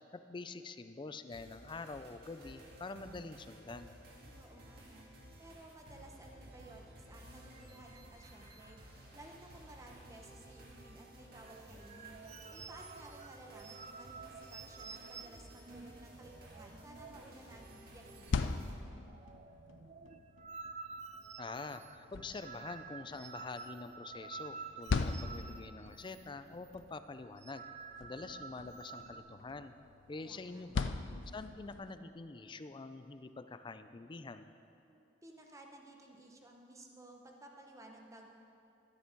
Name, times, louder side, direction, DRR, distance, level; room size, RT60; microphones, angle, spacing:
voice 1, 0.1-4.0 21.4-27.6 28.0-29.7 30.1-30.9 31.3-34.6, left 3 dB, 25° left, 11 dB, 0.4 m, -46 dB
sound 1, 1.3-18.7, right 1 dB, 55° right, 1.9 m, -55 dB
voice 2, 4.2-5.1 5.4-8.8 9.1-12.2 12.5-18.6 30.2-30.6 34.8-38.3, right 1 dB, 15° right, 1 dB, 1.0 m, -56 dB
sound 2, 11.4-17.4 17.6-17.8 18.1-18.6 18.9-26.3 26.5-26.7 27.2-29.2, right 5 dB, 40° right, 0.4 m, -50 dB
sound 3, 18.0-32.0, left 4 dB, 85° left, 0.5 m, -42 dB
12.0 x 10.0 x 4.6 m, 2.8 s
head